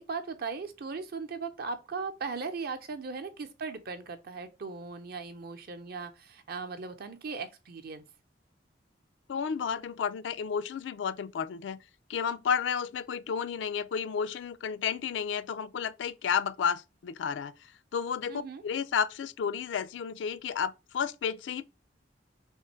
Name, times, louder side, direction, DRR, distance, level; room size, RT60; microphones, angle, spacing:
voice 1, 0.0-8.0 18.3-18.6, right 4 dB, 60° right, 0.6 m, -38 dB
voice 2, 9.3-11.8 12.1-17.5 17.9-21.7, left 7 dB, 80° left, 0.4 m, -32 dB
3.6 x 2.6 x 4.2 m
head